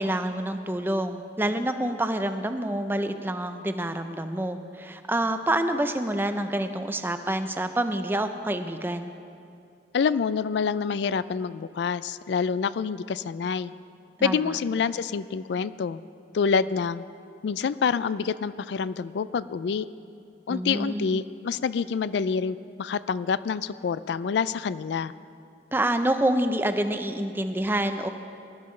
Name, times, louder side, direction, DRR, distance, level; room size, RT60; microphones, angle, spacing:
voice 1, 0.0-9.1 14.2-14.6 20.5-21.3 25.7-28.1, right 1 dB, 10° right, 8 dB, 0.5 m, -27 dB
voice 2, 9.9-13.7 14.2-16.0 16.3-17.0 17.4-19.9 20.5-25.1, left 6 dB, 65° left, 16 dB, 0.3 m, -27 dB
19.0 x 12.5 x 3.2 m, 2.5 s
head